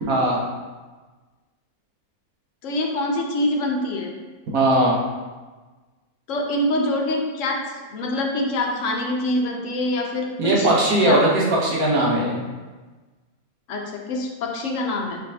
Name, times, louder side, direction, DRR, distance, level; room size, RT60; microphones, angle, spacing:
voice 1, 0.1-0.4 4.5-4.9 10.4-12.4, right 1 dB, 80° right, -4 dB, 1.5 m, -19 dB
voice 2, 2.6-4.1 6.3-10.7 11.0-11.2 13.7-15.2, left 1 dB, 65° left, 1 dB, 1.0 m, -25 dB
5.3 x 3.4 x 2.7 m, 1.3 s
omnidirectional pair, 1.5 m